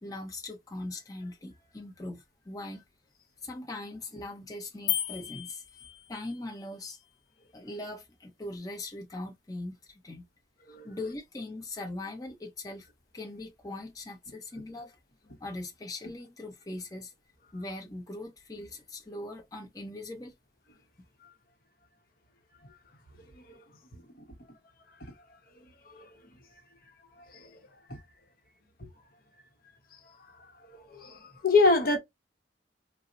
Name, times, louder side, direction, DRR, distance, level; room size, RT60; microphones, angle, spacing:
voice 1, 0.0-2.8 3.4-5.6 6.1-7.0 7.5-10.2 10.7-12.9 13.1-15.0 15.4-17.1 17.5-20.3, left 2 dB, 20° left, 0.7 m, -40 dB
sound 1, 4.9-6.4, left 13 dB, 80° left, 0.4 m, -34 dB
voice 2, 23.9-24.2 25.0-25.1 25.8-26.1 27.3-27.5 27.9-28.0 30.7-32.0, left 3 dB, 55° left, 0.8 m, -27 dB
4.2 x 2.0 x 2.5 m
head